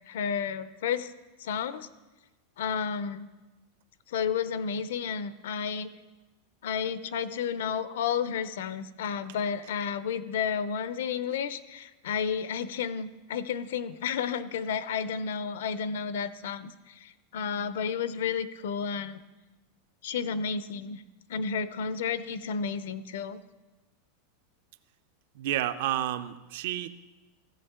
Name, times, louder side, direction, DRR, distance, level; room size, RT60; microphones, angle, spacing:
voice 1, 0.1-1.1 1.4-1.9 2.6-3.3 4.1-5.9 6.6-19.2 20.0-21.0 21.3-23.4, left 7 dB, 85° left, 14 dB, 0.6 m, -32 dB
voice 2, 25.4-26.9, right 12 dB, 60° right, 12 dB, 0.5 m, -30 dB
15.0 x 8.0 x 3.7 m, 1.1 s
supercardioid pair, 170°, 0 cm